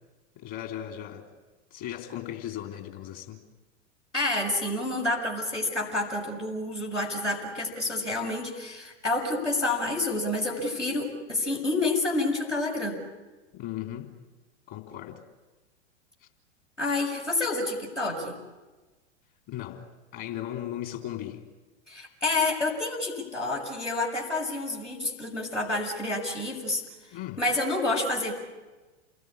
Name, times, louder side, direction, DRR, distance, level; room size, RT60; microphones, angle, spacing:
voice 1, 0.4-1.3 1.7-3.4 13.5-14.1 14.7-15.2 19.5-19.8 20.1-21.4 27.1-27.4, left 12 dB, 45° left, 4 dB, 3.6 m, -37 dB
voice 2, 4.1-13.0 16.8-18.4 21.9-26.8 27.4-28.3, left 2 dB, 85° left, -2 dB, 6.4 m, -28 dB
28.5 x 21.0 x 9.9 m, 1.2 s
figure-of-eight pair, 95°, 35 cm